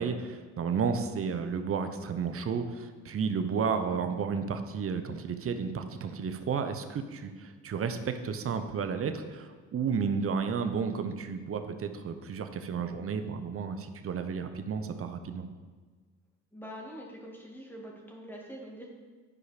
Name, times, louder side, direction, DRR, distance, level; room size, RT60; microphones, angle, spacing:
voice 1, 0.0-15.5, right 6 dB, 50° right, 8 dB, 0.9 m, -32 dB
voice 2, 16.5-18.9, equal, 5° left, -1 dB, 2.2 m, -44 dB
11.0 x 4.8 x 5.1 m, 1.4 s
cardioid pair, 90°, 30 cm